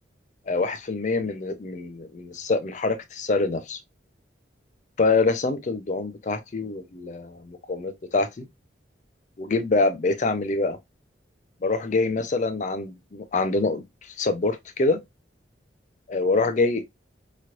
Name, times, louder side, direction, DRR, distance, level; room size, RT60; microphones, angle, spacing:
voice 1, 0.5-3.8 5.0-8.5 9.4-10.8 11.6-15.0 16.1-16.8, left 3 dB, 40° left, 0.4 m, -25 dB
3.0 x 2.9 x 2.4 m
head